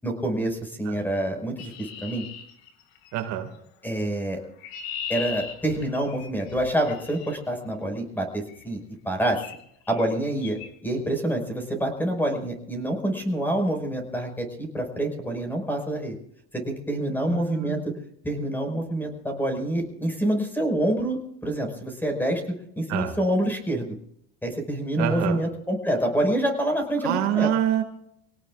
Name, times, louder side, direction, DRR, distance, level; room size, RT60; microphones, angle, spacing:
voice 1, 0.0-2.2 3.8-4.4 5.1-9.4 9.9-16.1 16.5-17.8 18.2-22.4 22.8-24.0 24.4-27.5, right 1 dB, 5° left, 4 dB, 5.3 m, -27 dB
Chirp tweet, 1.6-3.2 4.2-7.4 8.5-8.7 9.3-9.6 9.9-10.1 10.4-10.7, left 8 dB, 85° left, 2.2 m, -38 dB
voice 2, 3.1-3.5 17.3-17.8 22.9-23.1 25.0-25.4 27.0-27.8, right 11 dB, 65° right, 5 dB, 2.1 m, -26 dB
27.0 x 18.0 x 2.4 m, 0.71 s
supercardioid pair, 120°, 30 cm